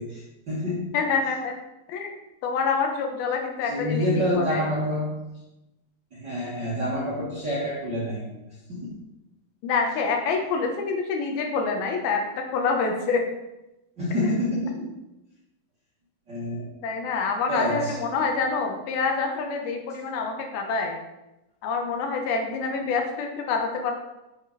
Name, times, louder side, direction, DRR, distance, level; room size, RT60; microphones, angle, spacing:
voice 1, 0.0-0.9 3.6-5.2 6.1-8.3 8.7-8.9 14.0-14.9 16.3-16.7 17.5-18.0 22.8-22.9, left 1 dB, 45° right, -7 dB, 1.5 m, -27 dB
voice 2, 0.9-1.6 1.9-2.1 2.4-4.6 9.6-13.3 14.2-14.3 16.8-21.0 21.6-24.0, left 4 dB, 75° left, 3 dB, 2.8 m, -26 dB
8.0 x 7.0 x 4.1 m, 0.96 s
omnidirectional pair, 4.5 m